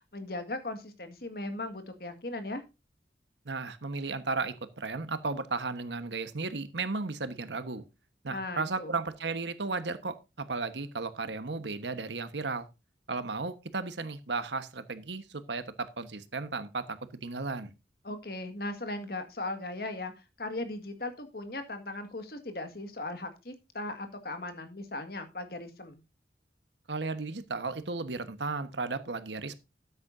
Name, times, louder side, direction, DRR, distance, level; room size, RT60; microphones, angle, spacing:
voice 1, 0.1-2.6 8.3-9.0 18.0-26.0, left 2 dB, 55° left, 8 dB, 1.8 m, -38 dB
voice 2, 3.4-7.8 8.2-12.7 13.1-17.7 26.9-29.6, right 3 dB, 85° right, 11 dB, 1.2 m, -34 dB
13.5 x 9.5 x 2.6 m, 0.27 s
head